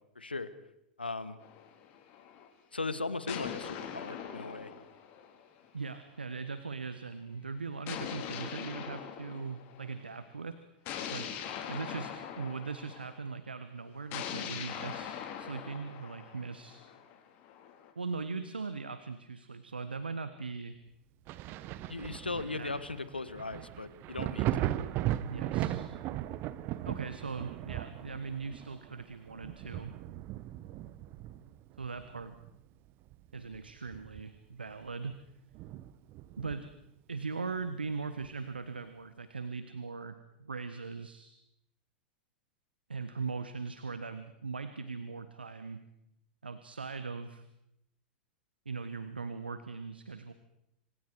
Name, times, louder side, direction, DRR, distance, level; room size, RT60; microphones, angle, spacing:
voice 1, 0.1-0.5 1.0-1.4 2.7-4.7 21.9-24.7, left 3 dB, 90° left, 14 dB, 1.5 m, -38 dB
sound 1, 1.4-2.5 3.3-5.9 7.9-10.0 10.9-13.2 14.1-17.9, left 8 dB, 45° left, 4.2 m, -42 dB
voice 2, 5.7-10.6 11.1-11.4 11.7-16.8 17.9-20.8 22.6-22.7 25.3-25.9 26.8-29.9 31.8-32.4 33.3-35.2 36.4-36.7 37.1-41.4 42.9-45.8 46.4-47.4 48.6-50.3, right 4 dB, 85° right, 11 dB, 1.3 m, -40 dB
Thunder, 21.3-32.6 33.0-34.5 34.9-35.0 35.5-36.8 38.2-38.3, right 13 dB, 40° right, 1.1 m, -38 dB
27.0 x 26.5 x 4.7 m, 0.82 s
figure-of-eight pair, 90°, 5 cm